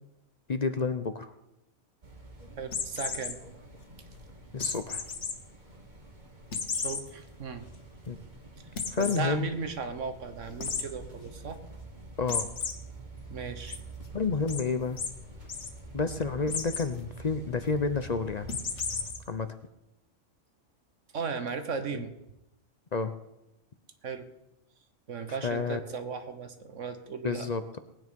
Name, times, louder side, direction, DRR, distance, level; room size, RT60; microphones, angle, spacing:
voice 1, 0.5-1.3 4.5-5.0 8.1-8.2 8.9-9.5 12.2-12.5 14.1-15.0 15.9-18.5 19.3-19.5 21.9-22.0 22.9-23.1 25.3-25.8 27.2-27.8, left 4 dB, 40° left, 9 dB, 0.7 m, -30 dB
sound 1, 2.0-19.1, right 2 dB, 40° right, 1.8 m, -47 dB
voice 2, 2.6-3.4 6.7-7.7 9.0-11.6 13.3-13.8 21.1-22.1 24.0-24.3 25.1-27.5, right 5 dB, 80° right, 8 dB, 1.6 m, -36 dB
sound 2, 2.7-3.3 4.6-5.3 5.8-5.9 6.5-7.0 7.5-7.6 7.9-8.0 8.8-9.2 10.6-10.8 12.3-12.7 13.2-13.8 14.5-14.6 15.0-15.1 15.4-15.7 16.5-16.9 18.5-19.2, left 5 dB, 70° left, 1.7 m, -33 dB
19.0 x 9.4 x 5.3 m, 0.89 s
omnidirectional pair, 1.2 m